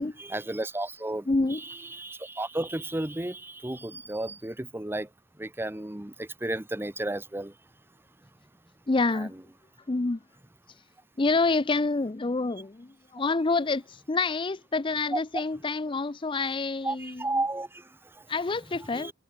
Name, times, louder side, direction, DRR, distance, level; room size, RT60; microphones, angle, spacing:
voice 1, 0.2-5.1 5.4-7.6 9.1-9.3 15.1-15.4 16.8-18.3 18.9-19.1, right 2 dB, 10° right, 0.8 m, -33 dB
voice 2, 1.3-1.6 8.9-9.3 9.9-10.2 11.2-17.3 18.3-19.1, left 3 dB, 25° left, 0.5 m, -27 dB
head